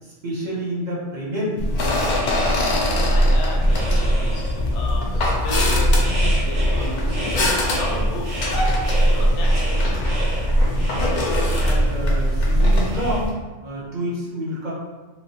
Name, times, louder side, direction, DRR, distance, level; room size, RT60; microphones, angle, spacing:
voice 1, 0.0-1.7 10.9-11.2 11.6-13.3 13.6-14.7, equal, 45° right, -6 dB, 0.7 m, -28 dB
sound 1, 1.6-13.3, equal, 55° left, 0.5 m, -20 dB
sound 2, 1.7-13.2, right 1 dB, 85° right, 1.3 m, -33 dB
voice 2, 2.8-8.6 9.0-10.5, left 1 dB, 85° left, -1 dB, 0.9 m, -34 dB
3.0 x 2.3 x 2.8 m, 1.2 s
omnidirectional pair, 1.1 m